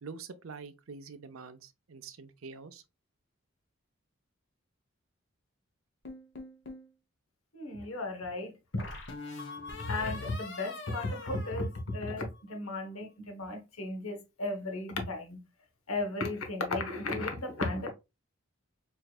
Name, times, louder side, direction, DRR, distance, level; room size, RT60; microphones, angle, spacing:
voice 1, 0.0-2.8, right 4 dB, 75° right, 0.6 m, -46 dB
sound 1, 6.1-6.9 8.8-12.4, left 3 dB, 55° left, 1.0 m, -43 dB
voice 2, 7.5-8.8 9.9-15.4 15.9-17.9, left 2 dB, 85° left, 1.1 m, -35 dB
4.5 x 3.1 x 2.4 m
head